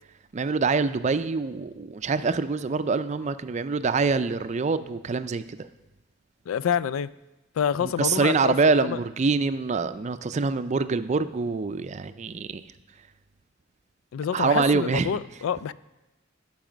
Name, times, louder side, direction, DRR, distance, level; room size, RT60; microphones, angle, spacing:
voice 1, 0.3-5.6 7.8-12.6 14.3-15.1, right 4 dB, 35° right, 0.4 m, -25 dB
voice 2, 6.5-7.1 7.6-9.0 14.1-15.7, left 8 dB, 85° left, 0.3 m, -27 dB
14.0 x 4.8 x 6.1 m
head